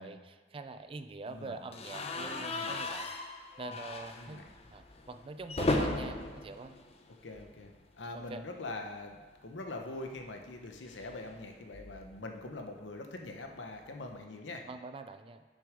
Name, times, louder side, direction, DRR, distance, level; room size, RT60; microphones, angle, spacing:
voice 1, 0.0-3.1 3.6-4.4 4.7-6.8 8.1-8.5 14.7-15.4, right 3 dB, 30° right, 9 dB, 0.4 m, -44 dB
voice 2, 1.3-1.6 2.2-2.8 3.7-3.8 4.2-4.5 7.2-14.7, left 2 dB, 80° left, 4 dB, 0.9 m, -43 dB
sound 1, 1.7-7.8 8.1-8.3 8.5-8.6 9.9-12.2, left 2 dB, 35° left, 0.6 m, -37 dB
7.0 x 6.4 x 5.0 m, 1.4 s
head